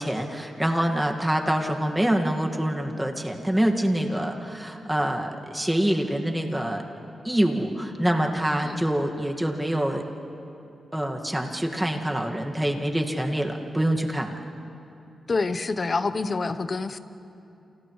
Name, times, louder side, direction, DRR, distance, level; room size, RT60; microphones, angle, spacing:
voice 1, 0.0-6.8 7.2-10.0 10.9-14.3, right 1 dB, 10° right, 2 dB, 1.8 m, -25 dB
voice 2, 15.3-17.0, left 3 dB, 45° left, 12 dB, 0.8 m, -27 dB
30.0 x 28.0 x 3.2 m, 2.8 s
cardioid pair, 70°, 0 cm